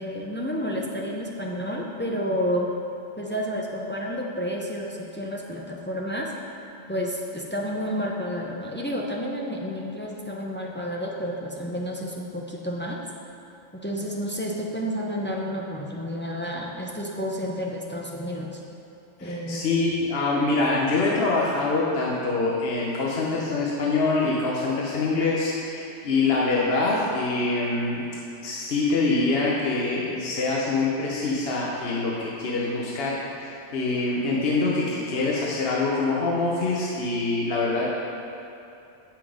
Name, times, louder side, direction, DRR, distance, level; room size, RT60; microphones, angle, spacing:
voice 1, 0.0-2.7 3.2-6.3 6.9-13.0 13.7-18.6 19.2-19.7, equal, 15° left, -2 dB, 0.4 m, -30 dB
voice 2, 19.2-28.1 28.4-37.8, left 3 dB, 60° left, -4 dB, 1.1 m, -25 dB
7.5 x 5.8 x 4.9 m, 2.7 s
omnidirectional pair, 1.2 m